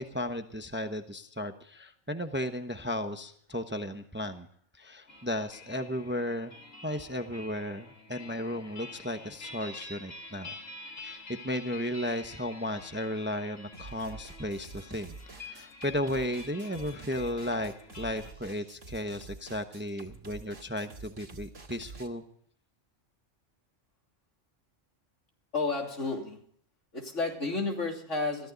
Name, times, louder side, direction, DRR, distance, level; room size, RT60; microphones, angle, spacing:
voice 1, 0.0-4.5 4.8-6.5 6.8-10.6 11.0-22.2, left 1 dB, 10° right, 8 dB, 0.8 m, -35 dB
sound 1, 5.1-18.3, left 3 dB, 90° left, 2.9 m, -48 dB
sound 2, 13.7-22.1, right 3 dB, 80° right, 2.5 m, -48 dB
voice 2, 25.5-26.4 26.9-28.5, left 3 dB, 70° left, 2 dB, 3.3 m, -31 dB
22.0 x 14.5 x 4.0 m, 0.62 s
omnidirectional pair, 1.3 m